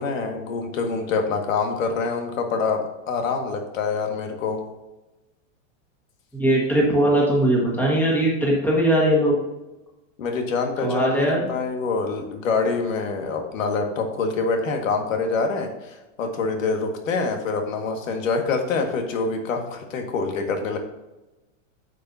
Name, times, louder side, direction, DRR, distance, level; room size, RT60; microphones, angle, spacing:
voice 1, 0.0-4.6 10.2-20.8, left 4 dB, 90° left, 4 dB, 1.8 m, -25 dB
voice 2, 6.3-9.4 10.8-11.5, right 1 dB, 5° left, -3 dB, 1.5 m, -20 dB
10.0 x 6.9 x 2.7 m, 1.0 s
supercardioid pair, 165°, 38 cm